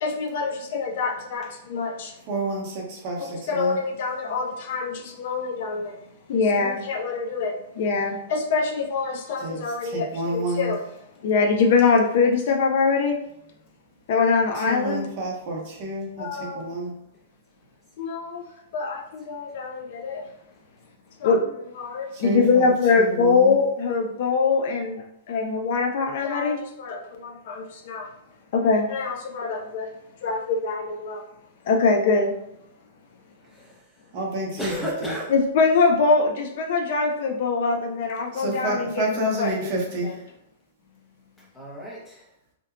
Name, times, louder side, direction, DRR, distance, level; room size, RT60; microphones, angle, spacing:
voice 1, 0.0-2.1 3.5-6.0 6.3-10.8 11.2-13.2 14.1-15.1 16.2-16.6 18.0-18.5 18.7-20.2 21.2-28.1 28.5-29.9 30.2-31.2 31.6-32.3 35.3-39.5 40.0-40.1, left 4 dB, 50° left, 3 dB, 0.3 m, -23 dB
voice 2, 2.3-3.8 9.4-10.7 14.5-16.9 22.1-23.6 34.1-34.7 35.0-35.1 38.3-40.3, right 1 dB, 40° right, -1 dB, 0.6 m, -29 dB
voice 3, 33.5-33.9 34.6-35.3 41.4-42.3, equal, 10° left, -5 dB, 0.7 m, -33 dB
2.7 x 2.1 x 2.4 m, 0.78 s
supercardioid pair, 165°, 0 cm